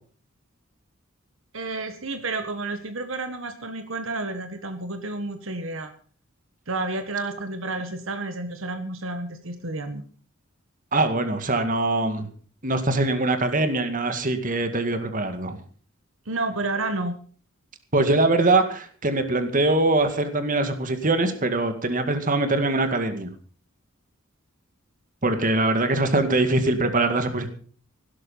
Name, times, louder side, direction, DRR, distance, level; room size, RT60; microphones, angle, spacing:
voice 1, 1.5-5.9 6.7-10.0 16.2-17.2, right 2 dB, 70° right, 8 dB, 1.6 m, -30 dB
voice 2, 10.9-12.3 12.6-15.6 17.9-23.3 25.2-27.5, right 2 dB, 40° right, 8 dB, 2.2 m, -22 dB
16.5 x 12.5 x 5.6 m, 0.43 s
head